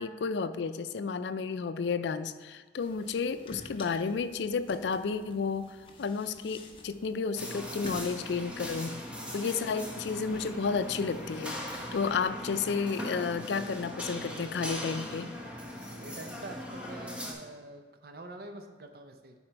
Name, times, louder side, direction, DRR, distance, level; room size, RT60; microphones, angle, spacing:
voice 1, 0.0-8.9 9.3-15.3, left 5 dB, 75° left, 12 dB, 0.4 m, -32 dB
sound 1, 2.8-12.3, left 1 dB, 30° left, 0.8 m, -50 dB
sound 2, 7.4-17.3, left 1 dB, 5° right, 1.1 m, -40 dB
voice 2, 15.9-19.3, right 2 dB, 55° right, 5 dB, 0.6 m, -46 dB
10.5 x 4.3 x 4.5 m, 1.5 s
head